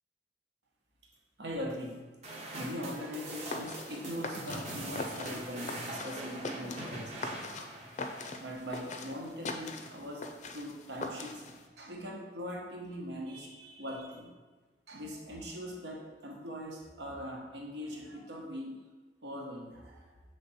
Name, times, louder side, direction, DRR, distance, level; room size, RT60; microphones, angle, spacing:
voice 1, 1.4-2.0 2.5-7.8 8.4-10.2 10.5-14.3 14.9-18.7 19.2-20.1, equal, 75° right, -1 dB, 1.2 m, -41 dB
sound 1, 2.2-8.8, right 1 dB, 40° right, 1.1 m, -43 dB
sound 2, 3.3-11.7, left 3 dB, 45° left, 0.5 m, -42 dB
7.2 x 3.4 x 4.2 m, 1.3 s
head